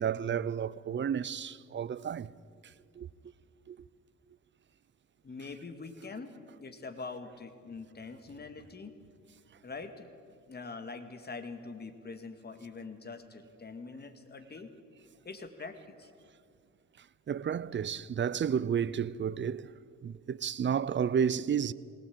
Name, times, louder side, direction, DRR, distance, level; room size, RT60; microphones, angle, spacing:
voice 1, 0.0-2.3 3.0-3.1 3.7-3.8 17.3-19.7 20.0-21.7, right 8 dB, 40° right, 0.7 m, -31 dB
voice 2, 5.2-8.9 9.6-10.1 10.5-14.7 15.2-16.1, left 4 dB, 35° left, 2.1 m, -44 dB
21.0 x 18.5 x 8.7 m
cardioid pair, 90°, 30 cm